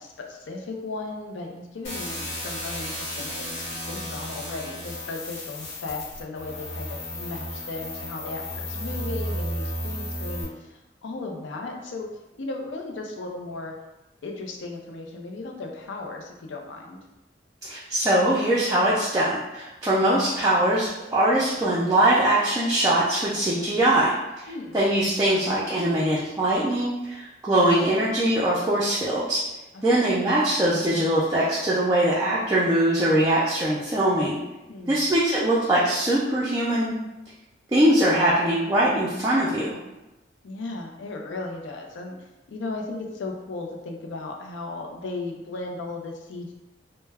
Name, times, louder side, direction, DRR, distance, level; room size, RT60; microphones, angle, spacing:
voice 1, 0.0-12.1 12.4-13.7 14.2-17.0 24.5-24.8 29.7-30.0 34.7-35.0 40.4-46.5, left 3 dB, 85° left, 2 dB, 0.4 m, -36 dB
sound 1, 1.8-10.4, left 1 dB, 60° left, 1.2 m, -33 dB
voice 2, 17.7-24.1 24.4-29.4 29.8-34.4 34.9-36.9 37.7-39.7, right 1 dB, 15° right, -8 dB, 0.3 m, -22 dB
2.2 x 2.1 x 3.2 m, 1.0 s
head